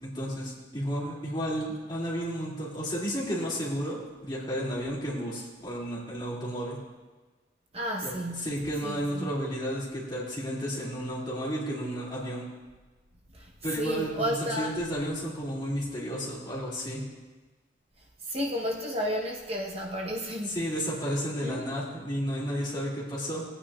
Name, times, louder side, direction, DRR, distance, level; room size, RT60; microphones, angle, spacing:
voice 1, 0.0-6.8 8.0-8.1 8.4-12.4 13.6-17.0 20.5-23.4, equal, 25° left, -6 dB, 2.6 m, -32 dB
voice 2, 7.7-8.5 8.8-9.3 13.3-14.7 18.2-20.6 21.4-21.7, equal, 35° right, -1 dB, 1.0 m, -32 dB
18.5 x 8.9 x 2.4 m, 1.3 s
head